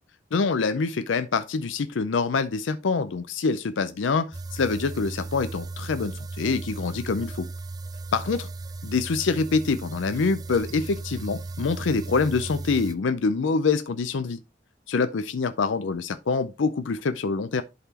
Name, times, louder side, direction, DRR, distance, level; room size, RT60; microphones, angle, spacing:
voice 1, 0.3-7.5 8.1-8.5 8.8-14.4 14.9-17.6, left 4 dB, 70° left, 0.5 m, -25 dB
sound 1, 4.3-12.9, right 3 dB, 20° right, 0.3 m, -36 dB
11.0 x 4.1 x 2.8 m
head